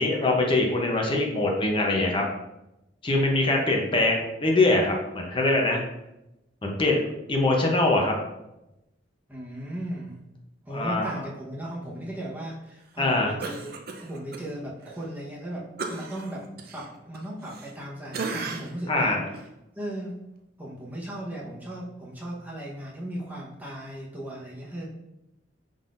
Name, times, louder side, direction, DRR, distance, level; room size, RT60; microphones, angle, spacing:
voice 1, 0.0-2.2 3.0-5.8 6.6-7.0 7.3-8.1 10.7-11.1 13.0-13.3 18.9-19.2, left 2 dB, 25° left, 0 dB, 0.7 m, -23 dB
voice 2, 9.3-10.2 10.6-13.7 14.0-16.5 16.7-19.2 19.7-20.2 20.6-24.9, right 1 dB, 10° right, -5 dB, 1.0 m, -36 dB
Cough, 13.4-14.4 14.8-15.0 15.8-17.8 18.1-18.8 19.3-19.5, right 4 dB, 55° right, 0.5 m, -36 dB
5.5 x 3.8 x 2.5 m, 0.91 s
head